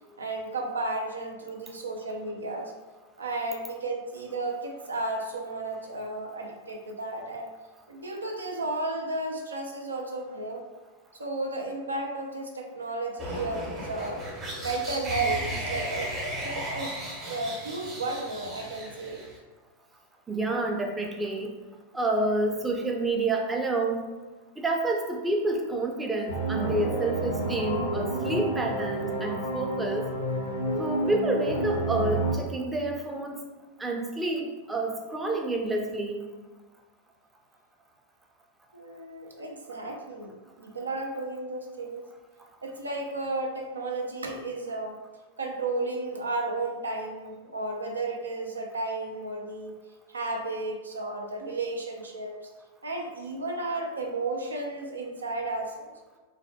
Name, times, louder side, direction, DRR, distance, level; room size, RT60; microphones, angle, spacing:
voice 1, 0.2-2.7 3.2-7.5 7.9-10.6 11.1-14.2 14.6-16.1 16.4-19.2 38.7-42.0 42.6-45.0 45.4-49.8 50.1-52.5 52.8-55.9, right 2 dB, 85° right, 1 dB, 0.4 m, -33 dB
sound 1, 13.2-19.4, equal, 30° right, 0.8 m, -35 dB
voice 2, 20.3-21.5 21.9-24.0 24.6-30.0 30.8-33.4 33.8-36.3, right 2 dB, 15° right, 1 dB, 0.4 m, -29 dB
sound 2, 26.3-32.3, right 1 dB, 80° left, 0.5 m, -29 dB
3.1 x 2.1 x 2.7 m, 1.3 s
figure-of-eight pair, 95°, 0 cm